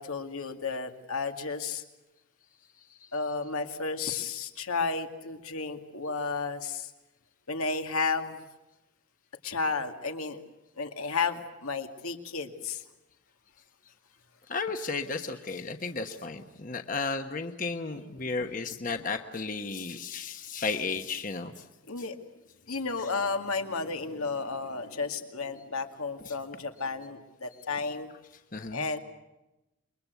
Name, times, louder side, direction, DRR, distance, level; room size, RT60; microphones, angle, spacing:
voice 1, 0.0-1.8 3.1-6.9 7.5-8.4 9.4-10.4 10.8-12.8 21.9-22.2 22.7-28.1 28.7-29.0, left 4 dB, 85° left, 5 dB, 2.2 m, -32 dB
voice 2, 14.5-21.5 28.5-28.8, left 4 dB, 40° left, 6 dB, 1.1 m, -33 dB
27.5 x 22.5 x 8.2 m, 1.0 s
head